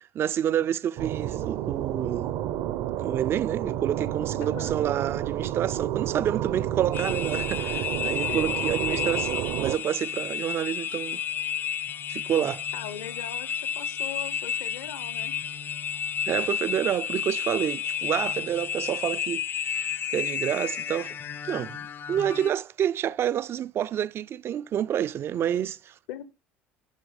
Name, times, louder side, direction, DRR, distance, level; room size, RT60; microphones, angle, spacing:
voice 1, 0.1-2.3 3.0-11.2 12.1-12.6 16.3-21.2 21.5-25.9, right 10 dB, 45° right, 0.4 m, -28 dB
sound 1, 1.0-9.8, right 12 dB, 70° right, 0.8 m, -30 dB
voice 2, 4.4-4.7 8.3-8.5 8.9-9.0 12.7-15.4 26.1-26.3, left 10 dB, 80° left, 1.1 m, -39 dB
sound 2, 6.9-22.5, left 8 dB, 35° left, 0.5 m, -31 dB
11.5 x 4.6 x 5.1 m
supercardioid pair, 80°, 6 cm